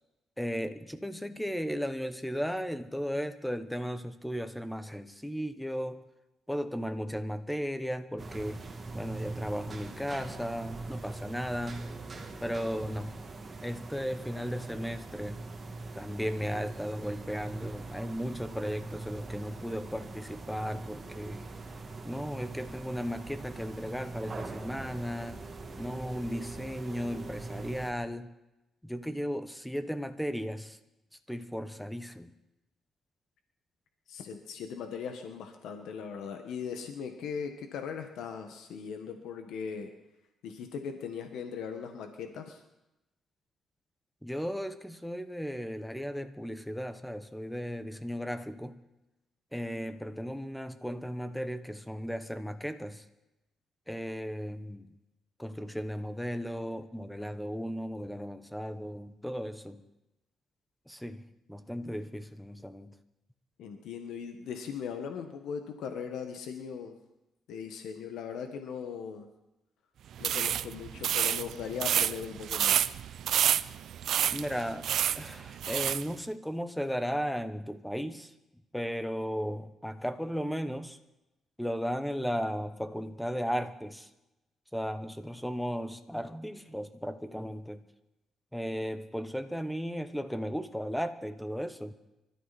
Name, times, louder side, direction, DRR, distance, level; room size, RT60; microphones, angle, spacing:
voice 1, 0.4-6.1 6.5-11.9 12.4-13.2 13.6-15.5 15.9-21.5 22.0-25.4 25.8-28.3 28.8-30.8 31.3-32.3 44.2-48.8 49.5-53.0 53.9-54.9 55.4-59.8 60.9-62.9 74.3-78.3 78.7-81.0 81.6-84.1 84.7-87.8 88.5-91.9, equal, 5° left, 1.2 m, -35 dB
sound 1, 8.2-27.9, right 3 dB, 30° right, 2.2 m, -42 dB
voice 2, 34.1-39.9 40.4-42.6 63.6-66.9 67.5-69.3 70.2-73.0, left 6 dB, 80° left, 1.5 m, -39 dB
sound 2, 70.2-76.1, right 10 dB, 70° right, 0.5 m, -29 dB
25.0 x 13.5 x 4.3 m
cardioid pair, 90°, 0 cm